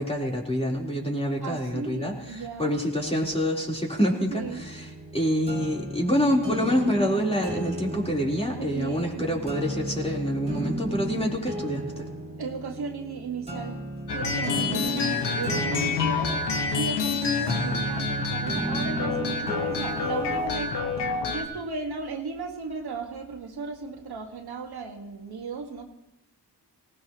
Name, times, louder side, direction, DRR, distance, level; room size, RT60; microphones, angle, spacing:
voice 1, 0.0-4.9 5.1-12.1, equal, 15° left, -2 dB, 3.8 m, -27 dB
voice 2, 1.4-2.8 4.3-4.6 8.6-9.5 12.4-13.8 14.1-16.3 16.7-20.9 21.3-25.9, right 4 dB, 70° right, 3 dB, 1.7 m, -35 dB
sound 1, 4.4-20.5, right 1 dB, 15° right, 3.0 m, -35 dB
sound 2, 14.1-21.4, left 4 dB, 85° left, 1.6 m, -28 dB
18.5 x 17.5 x 3.0 m, 0.93 s
cardioid pair, 50°, 40 cm